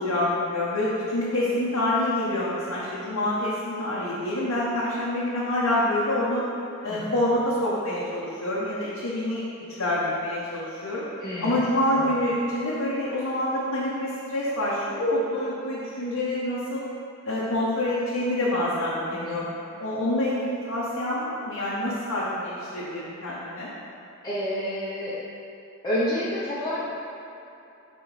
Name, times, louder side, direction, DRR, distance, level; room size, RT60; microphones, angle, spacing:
voice 1, 0.0-6.4 6.8-9.4 9.8-11.0 11.4-16.8 17.2-19.5 19.8-23.7, left 1 dB, 75° left, -8 dB, 0.9 m, -26 dB
voice 2, 11.2-12.1 19.1-19.5 24.2-25.2 25.8-26.8, equal, 15° left, -12 dB, 0.8 m, -29 dB
7.7 x 4.1 x 3.2 m, 2.8 s
head